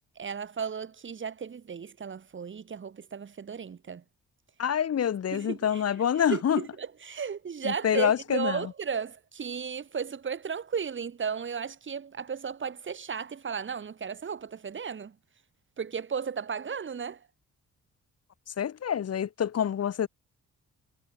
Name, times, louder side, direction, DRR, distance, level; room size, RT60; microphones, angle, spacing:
voice 1, 0.2-4.0 5.3-5.8 6.3-15.2 15.8-17.3, right 6 dB, 40° right, 2.3 m, -35 dB
voice 2, 4.6-6.6 7.6-8.6 18.6-20.1, left 9 dB, 55° left, 2.5 m, -26 dB
cardioid pair, 90°, 30 cm